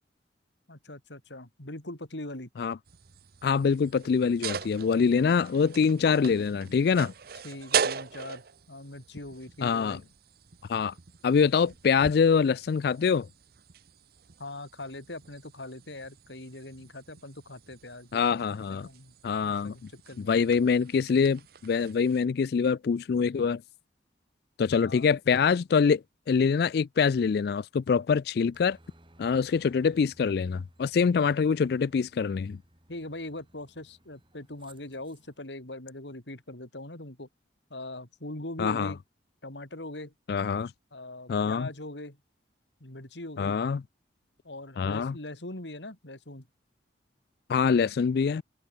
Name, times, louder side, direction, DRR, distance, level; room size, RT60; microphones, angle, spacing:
voice 1, 0.7-2.5 7.4-8.4 8.7-10.0 14.4-19.1 19.4-20.4 24.8-25.1 32.9-37.3 37.7-39.0 39.4-40.1 40.9-42.2 42.8-43.6 44.4-46.5, left 1 dB, 75° left, 3.6 m, -41 dB
sound 1, 2.9-22.2, right 7 dB, 55° right, 0.9 m, -40 dB
voice 2, 3.4-7.1 9.6-10.0 10.7-10.9 11.2-13.3 18.1-18.9 19.2-19.8 20.2-23.6 24.6-28.8 29.2-32.6 38.6-38.9 40.3-40.7 41.3-41.7 43.4-43.8 44.8-45.1 47.5-48.4, left 6 dB, 60° left, 0.3 m, -25 dB
Aircraft, 28.5-35.4, right 1 dB, 30° right, 7.4 m, -60 dB
head